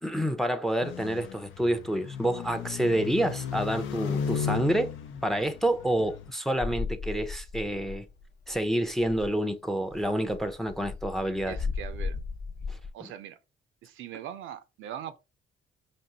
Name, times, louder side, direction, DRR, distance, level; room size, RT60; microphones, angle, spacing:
voice 1, 0.0-4.9 5.2-8.1 8.5-11.7 12.7-13.1, right 1 dB, ahead, 0.5 m, -28 dB
sound 1, 0.8-6.3, left 7 dB, 80° left, 0.5 m, -35 dB
sound 2, 6.6-8.2 8.5-8.6 8.9-9.4 9.9-12.9, left 4 dB, 55° left, 0.9 m, -36 dB
voice 2, 11.4-12.2 12.9-13.4 13.8-15.2, right 10 dB, 85° right, 0.5 m, -41 dB
5.1 x 2.6 x 2.8 m
cardioid pair, 90°, 20 cm